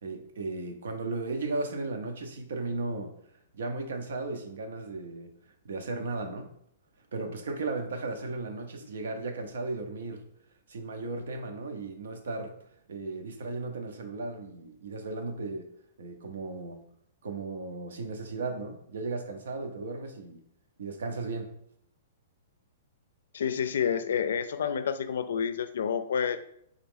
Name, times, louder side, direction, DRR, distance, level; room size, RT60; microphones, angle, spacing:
voice 1, 0.0-3.1 3.5-5.3 5.6-6.5 7.1-10.2 10.7-12.6 12.9-15.7 16.0-16.8 17.2-20.4 20.8-21.5, right 3 dB, 85° right, 5 dB, 0.7 m, -35 dB
voice 2, 23.3-26.4, left 7 dB, 80° left, 11 dB, 0.4 m, -29 dB
3.7 x 2.9 x 3.7 m, 0.72 s
hypercardioid pair, 165°, 0 cm